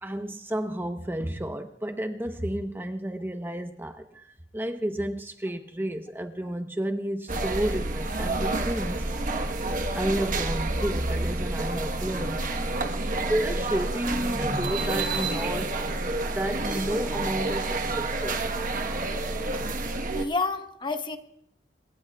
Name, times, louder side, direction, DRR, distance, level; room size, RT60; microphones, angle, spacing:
voice 1, 0.0-9.1 9.9-12.4 13.3-15.8 16.3-18.4, right 1 dB, 15° right, 0.9 m, -31 dB
sound 1, 7.3-20.3, right 2 dB, 50° right, 1.3 m, -29 dB
voice 2, 20.1-21.2, left 3 dB, 25° left, 1.1 m, -29 dB
26.5 x 22.0 x 2.4 m
head